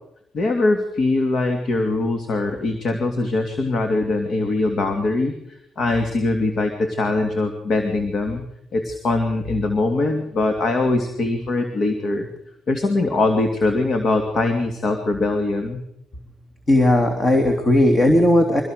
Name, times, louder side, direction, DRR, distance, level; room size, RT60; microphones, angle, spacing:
voice 1, 0.3-5.3 5.8-8.4 8.7-12.3 12.7-15.8, left 2 dB, 55° left, 5 dB, 2.7 m, -22 dB
voice 2, 16.7-18.6, left 1 dB, 30° left, 4 dB, 3.1 m, -16 dB
24.0 x 16.5 x 6.7 m, 0.80 s
cardioid pair, 90°, 0 cm